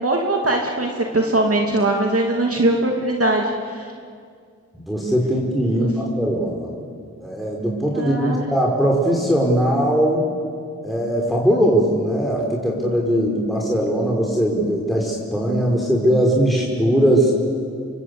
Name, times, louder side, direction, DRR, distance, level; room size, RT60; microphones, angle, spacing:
voice 1, 0.0-3.9 5.7-5.9 7.9-8.4, right 2 dB, 50° right, 1 dB, 2.7 m, -21 dB
voice 2, 4.7-6.8 7.2-10.3 10.8-17.3, equal, ahead, -2 dB, 5.0 m, -20 dB
28.0 x 24.0 x 8.4 m, 2.2 s
wide cardioid pair, 65°, 29 cm